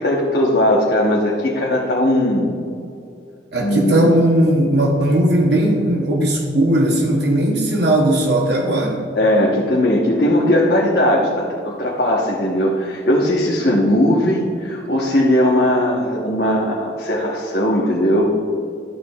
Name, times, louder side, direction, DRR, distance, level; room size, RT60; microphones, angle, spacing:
voice 1, 0.0-2.5 3.6-4.1 9.2-18.3, left 1 dB, 60° left, -4 dB, 1.0 m, -18 dB
voice 2, 3.5-9.0, right 1 dB, 65° right, 0 dB, 0.9 m, -17 dB
12.5 x 8.2 x 2.3 m, 2.5 s
head